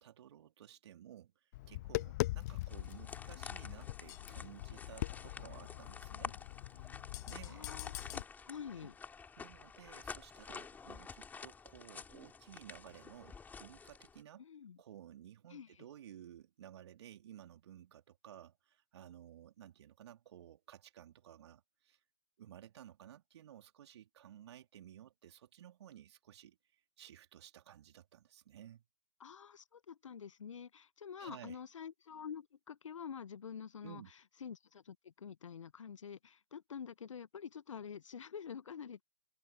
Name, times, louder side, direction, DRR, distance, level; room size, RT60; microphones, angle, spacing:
voice 1, 0.0-1.3 1.7-6.4 7.3-7.7 8.8-8.9 9.4-14.4 14.8-22.0 22.4-26.6 27.0-28.8 31.2-31.6 33.8-34.1, right 11 dB, 50° right, 3.5 m, -55 dB
Tap, 1.5-8.2, left 18 dB, 30° left, 0.5 m, -42 dB
sound 1, 2.7-14.2, left 5 dB, 10° left, 4.4 m, -50 dB
voice 2, 7.5-8.9 14.4-14.8 15.5-15.7 29.2-34.0 34.4-39.0, left 7 dB, 65° left, 1.1 m, -47 dB
figure-of-eight pair, 125°, 18 cm